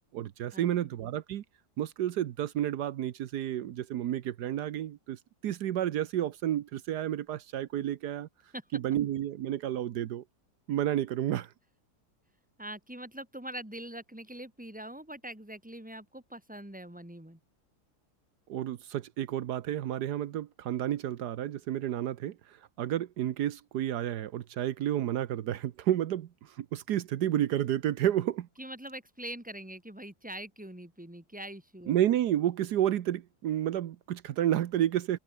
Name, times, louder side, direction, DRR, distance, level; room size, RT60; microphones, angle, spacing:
voice 1, 0.1-1.4 1.8-8.3 8.7-10.2 10.7-11.5 18.5-28.5 31.9-35.2, right 11 dB, 80° right, 1.4 m, -31 dB
voice 2, 12.6-17.4 28.6-31.9, right 1 dB, 5° right, 3.2 m, -43 dB
omnidirectional pair, 1.7 m